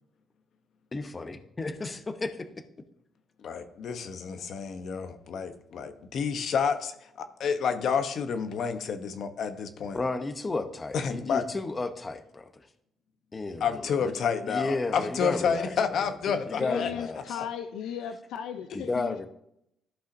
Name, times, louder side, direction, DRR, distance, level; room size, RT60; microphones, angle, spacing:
voice 1, 0.9-2.5 9.9-12.6 13.3-14.1 14.5-16.1 16.4-17.4 18.7-19.3, left 3 dB, 25° left, 0.8 m, -33 dB
voice 2, 3.4-10.0 10.9-11.4 13.6-16.9 17.4-17.5 18.7-18.8, left 6 dB, 65° left, 0.8 m, -30 dB
voice 3, 16.3-19.3, left 8 dB, 90° left, 0.4 m, -36 dB
13.5 x 5.5 x 2.6 m
cardioid pair, 90°, 0 cm